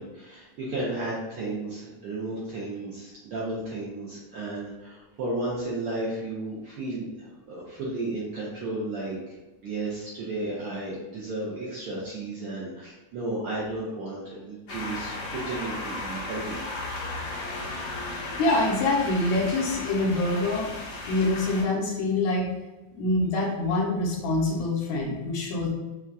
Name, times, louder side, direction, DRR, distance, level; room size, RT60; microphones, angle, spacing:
voice 1, 0.0-9.2 9.6-16.6, right 2 dB, 70° right, -6 dB, 1.4 m, -33 dB
sound 1, 14.7-21.6, left 2 dB, 55° left, 1.2 m, -34 dB
voice 2, 18.4-20.7 21.1-22.5 22.9-25.7, left 2 dB, 75° left, -2 dB, 2.1 m, -25 dB
7.0 x 2.8 x 2.3 m, 1.1 s
omnidirectional pair, 3.4 m